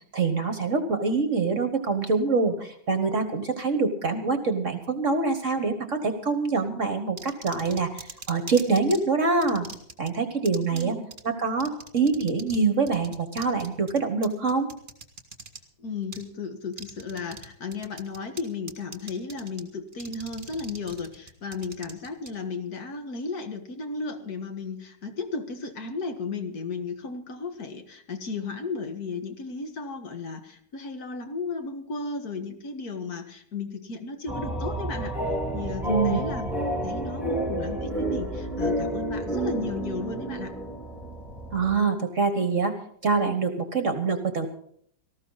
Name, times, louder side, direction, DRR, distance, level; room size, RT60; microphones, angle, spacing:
voice 1, 0.1-9.7 10.0-10.9 11.2-14.7 35.8-36.2 41.5-42.8 43.0-44.5, right 4 dB, 45° right, 8 dB, 1.3 m, -25 dB
sound 1, 7.2-9.0 9.4-10.1 10.4-10.8 11.1-11.2 11.6-12.6 12.9-15.6 16.1-16.2 16.7-17.5 17.7-18.4 18.7-19.6 19.9-22.3, right 3 dB, 25° right, 1.8 m, -41 dB
voice 2, 10.7-11.1 15.8-36.5 36.7-40.5, left 4 dB, 50° left, 6 dB, 2.0 m, -34 dB
sound 2, 34.3-41.7, right 1 dB, ahead, 2.6 m, -30 dB
18.5 x 14.5 x 4.0 m, 0.64 s
omnidirectional pair, 2.1 m